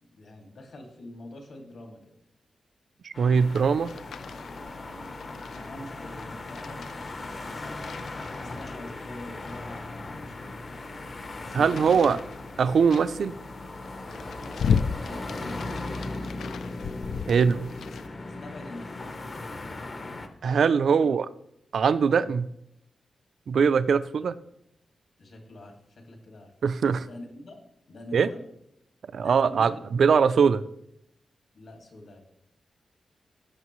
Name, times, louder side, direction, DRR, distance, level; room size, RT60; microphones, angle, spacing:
voice 1, 0.1-2.0 4.7-5.0 5.5-8.0 8.3-10.6 11.3-12.3 15.0-16.2 17.9-18.0 18.2-19.4 21.0-21.2 22.2-22.3 25.2-26.5 27.1-27.6 27.9-28.4 29.2-29.9 31.5-32.2, left 1 dB, 60° left, 2 dB, 2.1 m, -45 dB
voice 2, 3.0-3.9 11.5-12.2 12.6-13.3 17.3-17.7 20.4-21.3 21.7-22.5 23.5-24.4 26.6-27.1 28.1-28.3 29.1-30.6, right 6 dB, 60° right, 14 dB, 0.4 m, -22 dB
sound 1, 3.1-20.3, left 2 dB, 35° left, 0.8 m, -38 dB
sound 2, 3.3-18.1, left 6 dB, 75° left, 0.3 m, -36 dB
16.5 x 6.7 x 3.1 m, 0.77 s
wide cardioid pair, 170°, 0 cm